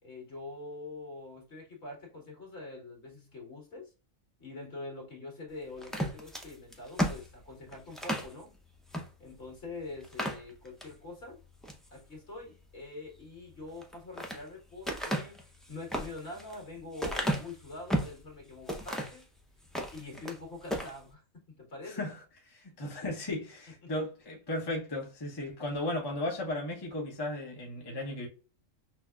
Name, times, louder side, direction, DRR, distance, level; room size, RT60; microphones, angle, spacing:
voice 1, 0.0-3.9 4.4-8.5 9.2-11.4 11.9-19.2 19.9-22.1 23.8-23.9, left 2 dB, 55° left, 2.0 m, -45 dB
sound 1, 5.8-8.3 8.9-9.1 9.4-9.5 10.0-10.9 11.4-11.9 13.7-14.4 14.8-18.2 18.7-19.2 19.6-20.4 20.6-20.9, equal, ahead, 0.3 m, -34 dB
voice 2, 22.5-28.3, left 1 dB, 20° left, 0.8 m, -35 dB
6.1 x 2.1 x 2.3 m
omnidirectional pair, 1.4 m